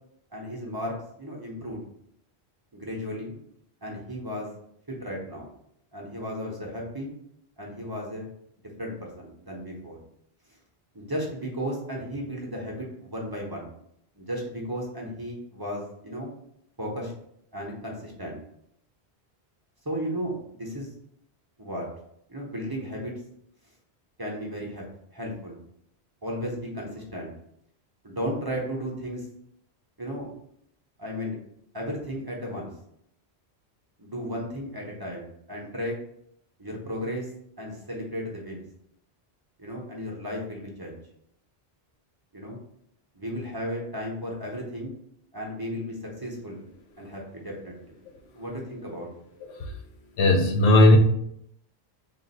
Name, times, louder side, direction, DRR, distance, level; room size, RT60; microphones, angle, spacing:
voice 1, 0.3-1.8 2.7-3.3 3.8-4.5 4.9-5.5 5.9-7.1 7.6-8.3 8.8-10.0 10.9-13.7 14.2-16.3 16.8-17.1 17.5-18.4 19.8-20.9 21.6-21.9 22.3-23.1 24.2-24.8 25.1-25.6 26.2-27.3 28.0-29.3 30.0-30.3 31.0-31.4 31.7-32.7 34.0-36.0 36.6-37.3 37.6-38.6 39.6-41.0 42.3-42.6 43.1-44.9 45.3-46.6 47.0-47.9 48.3-49.1, equal, 25° right, -3 dB, 0.7 m, -34 dB
voice 2, 50.2-51.0, left 1 dB, 80° left, 4 dB, 1.0 m, -17 dB
3.8 x 2.5 x 4.0 m, 0.72 s
omnidirectional pair, 1.1 m